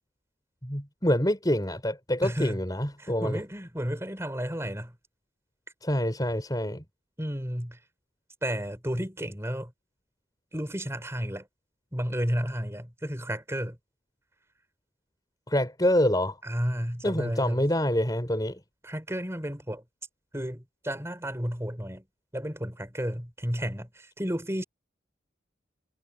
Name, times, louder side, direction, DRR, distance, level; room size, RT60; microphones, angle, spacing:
voice 1, 0.6-3.4 5.8-6.8 15.5-16.4 17.0-18.6, left 1 dB, 20° left, 6.0 m, -26 dB
voice 2, 2.2-2.6 3.0-5.0 7.2-7.8 8.4-9.7 10.5-11.5 11.9-13.8 16.4-17.7 18.8-19.8 20.3-22.0 22.3-24.6, equal, 15° right, 4.4 m, -32 dB
head